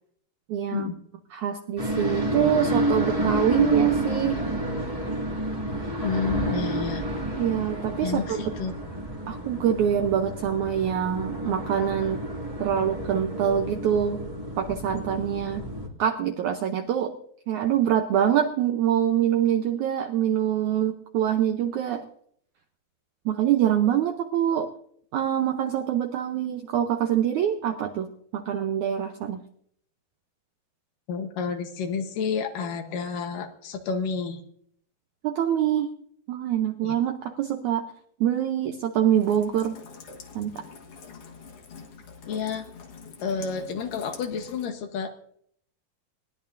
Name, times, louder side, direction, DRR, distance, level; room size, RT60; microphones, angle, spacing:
voice 1, 0.5-0.9 1.3-4.4 7.4-8.4 9.3-12.2 12.6-14.2 14.6-15.6 16.0-17.1 17.5-22.0 23.3-24.7 25.1-28.1 28.3-29.4 35.2-35.9 36.3-37.9 38.2-39.8 40.4-40.6, right 10 dB, 80° right, 6 dB, 1.7 m, -25 dB
sound 1, 1.8-15.9, right 1 dB, 15° right, 1.4 m, -30 dB
voice 2, 6.0-7.0 8.0-8.7 31.1-34.4 36.8-36.9 42.3-42.7 43.2-45.1, left 6 dB, 70° left, 6 dB, 2.5 m, -30 dB
Rain, 39.1-44.7, left 5 dB, 55° left, 1.8 m, -45 dB
21.5 x 17.5 x 2.6 m, 0.66 s
omnidirectional pair, 4.4 m